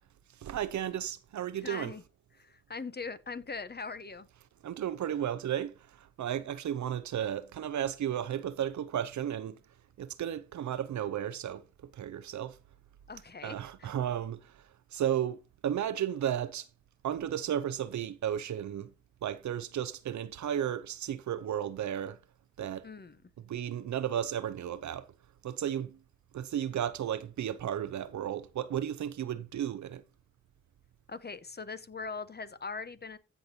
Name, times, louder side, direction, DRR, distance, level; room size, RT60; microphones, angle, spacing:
voice 1, 0.4-1.9 4.6-9.6 10.0-11.6 11.9-12.6 13.4-14.5 14.9-16.7 17.0-18.9 19.2-22.2 22.6-22.9 23.4-25.1 25.4-26.0 26.3-30.0, right 10 dB, 75° right, 0.7 m, -34 dB
voice 2, 1.6-2.0 2.3-4.3 6.3-6.5 13.1-13.9 22.8-23.2 31.1-33.2, left 4 dB, 35° left, 1.0 m, -41 dB
15.5 x 5.2 x 2.8 m
supercardioid pair, 45°, 29 cm